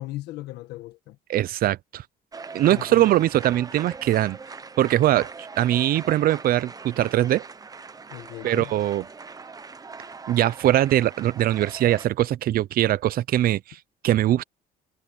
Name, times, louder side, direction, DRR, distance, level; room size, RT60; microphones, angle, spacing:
voice 1, 0.0-1.2 2.7-3.2 8.1-8.7, left 17 dB, 85° left, 1.5 m, -37 dB
voice 2, 1.3-2.0 2.5-4.4 4.8-5.3 5.6-7.4 8.4-9.0 10.3-13.8 14.0-14.4, right 13 dB, 60° right, 0.7 m, -21 dB
sound 1, 2.3-12.1, right 4 dB, 20° right, 1.0 m, -41 dB
cardioid pair, 110°, 17 cm